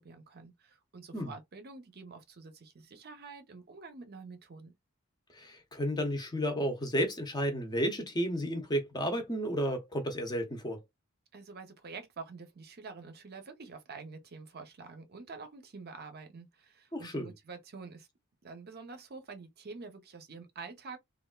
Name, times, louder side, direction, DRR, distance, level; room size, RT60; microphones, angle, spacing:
voice 1, 0.0-4.7 11.3-18.1 18.4-21.0, right 4 dB, 45° right, 0.7 m, -47 dB
voice 2, 5.3-10.8 16.9-17.3, equal, 20° left, 0.7 m, -32 dB
3.3 x 2.4 x 2.3 m
head